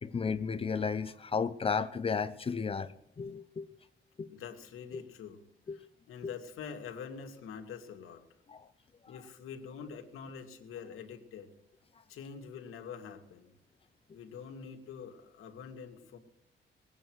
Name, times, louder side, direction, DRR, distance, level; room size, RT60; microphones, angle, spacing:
voice 1, 0.0-2.9 3.2-3.7 4.2-4.3 4.9-5.0 5.7-5.8 8.5-8.6, left 5 dB, 25° left, 0.7 m, -33 dB
voice 2, 4.3-5.4 5.7-8.2 9.1-11.5 12.1-13.5 14.1-16.2, left 6 dB, 90° left, 2.5 m, -45 dB
21.0 x 9.2 x 6.4 m
cardioid pair, 160°, 21 cm